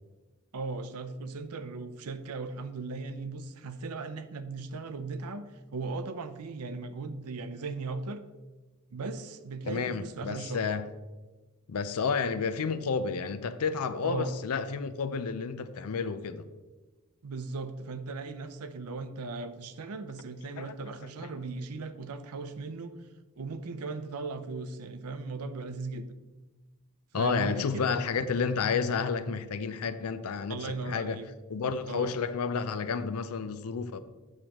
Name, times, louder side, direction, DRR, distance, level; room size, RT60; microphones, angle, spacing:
voice 1, 0.5-5.4 5.7-8.2 8.9-10.6 14.0-14.4 17.2-22.9 23.4-26.1 27.1-27.9 30.5-31.2 31.9-32.1, right 3 dB, 80° right, 0.6 m, -37 dB
voice 2, 9.7-10.9 11.7-16.5 20.6-20.8 27.1-31.2 31.5-34.0, left 5 dB, 75° left, 0.5 m, -31 dB
8.9 x 6.4 x 3.0 m
head